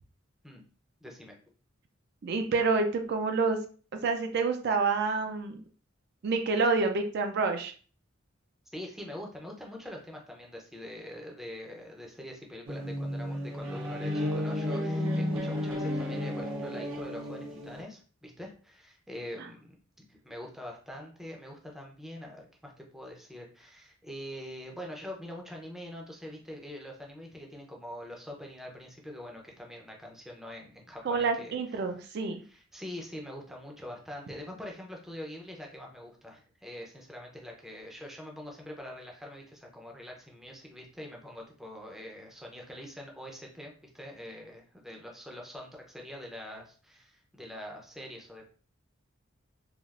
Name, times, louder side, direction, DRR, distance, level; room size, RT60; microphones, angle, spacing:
voice 1, 1.0-1.4 8.7-19.8 20.1-31.6 32.4-48.4, left 1 dB, ahead, 0 dB, 0.5 m, -44 dB
voice 2, 2.2-3.6 3.9-5.6 6.2-7.7 31.0-32.4, right 4 dB, 55° right, 6 dB, 0.4 m, -28 dB
sound 1, 12.7-17.8, left 1 dB, 85° right, 0.8 m, -32 dB
3.2 x 2.4 x 2.4 m, 0.41 s
head